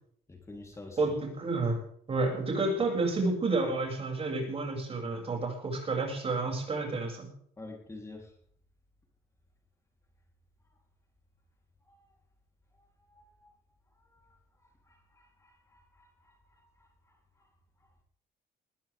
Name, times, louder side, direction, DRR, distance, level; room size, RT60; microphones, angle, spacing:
voice 1, 0.3-1.0 7.6-8.3 11.9-12.0 12.8-13.5 14.1-14.4 14.8-17.2, left 2 dB, 15° left, 1 dB, 3.6 m, -49 dB
voice 2, 1.0-1.8 2.1-7.3, right 3 dB, 35° right, 2 dB, 6.8 m, -30 dB
21.0 x 15.0 x 3.6 m, 0.62 s
cardioid pair, 110°, 17 cm